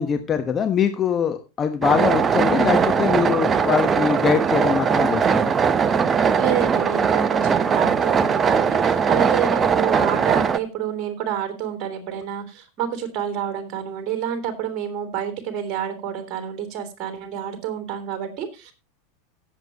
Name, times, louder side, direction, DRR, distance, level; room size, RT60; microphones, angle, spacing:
voice 1, 0.0-5.5, left 7 dB, 30° left, 7 dB, 1.2 m, -23 dB
sound 1, 1.8-10.6, right 6 dB, 25° right, 0.8 m, -20 dB
voice 2, 6.4-18.7, right 9 dB, 45° right, 7 dB, 3.2 m, -28 dB
17.5 x 7.5 x 3.0 m, 0.27 s
hypercardioid pair, 90°, 0 cm